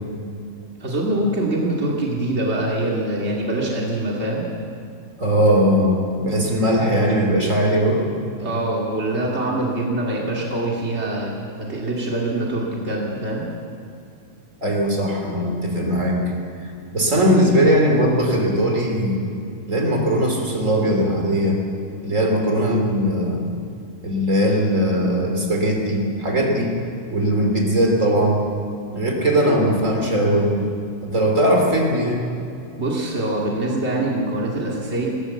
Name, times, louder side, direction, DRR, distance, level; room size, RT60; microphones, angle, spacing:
voice 1, 0.8-4.4 8.4-13.5 32.8-35.1, right 1 dB, 35° right, -3 dB, 1.0 m, -24 dB
voice 2, 5.2-8.1 14.6-16.3 16.9-19.2 19.7-21.6 22.0-23.4 24.0-26.7 27.1-28.5 28.9-30.6 31.0-32.2, equal, 20° right, 1 dB, 2.2 m, -19 dB
21.5 x 17.5 x 7.3 m, 2.6 s
omnidirectional pair, 5.3 m